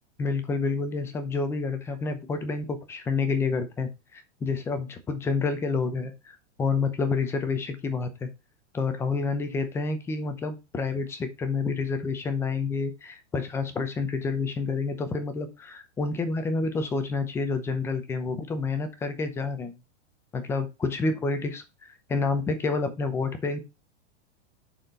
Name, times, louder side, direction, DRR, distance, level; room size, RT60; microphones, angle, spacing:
voice 1, 0.2-8.3 8.7-19.7 20.3-23.6, left 4 dB, 5° left, 8 dB, 0.6 m, -29 dB
9.3 x 4.4 x 3.9 m, 0.25 s
supercardioid pair, 170°, 35 cm